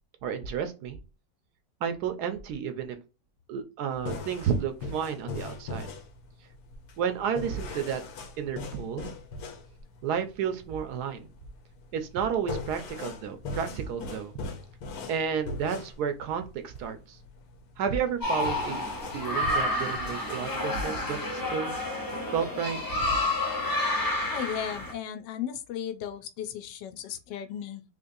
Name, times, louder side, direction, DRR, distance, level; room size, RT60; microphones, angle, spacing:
voice 1, 0.2-1.0 1.8-3.0 3.5-5.9 7.0-8.0 8.4-9.1 10.0-11.3 11.9-14.3 15.1-17.2 17.8-18.9 19.1-21.8 22.3-23.1, right 7 dB, 70° right, 1.1 m, -31 dB
sound 1, 3.9-20.4, left 3 dB, 65° left, 1.2 m, -40 dB
sound 2, 18.2-24.9, left 1 dB, 25° left, 0.4 m, -30 dB
voice 2, 24.3-27.8, left 9 dB, 85° left, 1.2 m, -35 dB
3.9 x 2.9 x 2.6 m
omnidirectional pair, 1.9 m